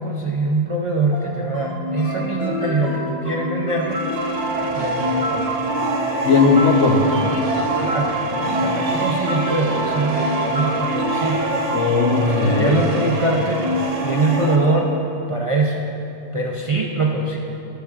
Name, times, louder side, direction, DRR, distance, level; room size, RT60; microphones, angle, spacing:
voice 1, 0.0-4.0 4.7-5.4 7.8-11.4 12.1-13.6 14.0-14.9 15.3-15.8 16.3-17.4, right 3 dB, 55° right, -1 dB, 0.3 m, -23 dB
sound 1, 1.1-14.8, left 1 dB, 60° left, 1.9 m, -27 dB
sound 2, 3.9-14.6, right 3 dB, 80° right, 1.1 m, -25 dB
voice 2, 6.2-7.3 11.7-12.8, left 4 dB, 85° left, 2 dB, 1.2 m, -17 dB
13.0 x 6.6 x 2.4 m, 2.9 s
omnidirectional pair, 1.2 m